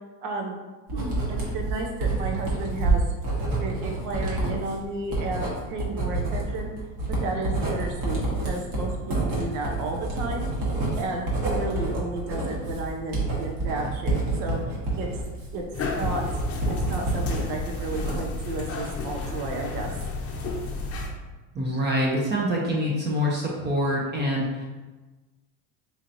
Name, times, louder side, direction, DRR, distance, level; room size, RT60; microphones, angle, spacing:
voice 1, 0.2-0.6 0.9-3.0 3.6-6.7 7.2-10.5 11.0-15.1 15.5-15.6 15.9-16.2 16.7-19.9, right 2 dB, 75° right, 1 dB, 0.9 m, -33 dB
Writing, 0.9-17.4 17.7-18.5, right 2 dB, 50° right, 1.4 m, -28 dB
sound 1, 15.7-21.1, left 3 dB, 35° left, 0.6 m, -32 dB
voice 2, 21.5-24.7, equal, 25° right, -2 dB, 0.6 m, -25 dB
4.3 x 2.9 x 2.6 m, 1.2 s
supercardioid pair, 120°, 43 cm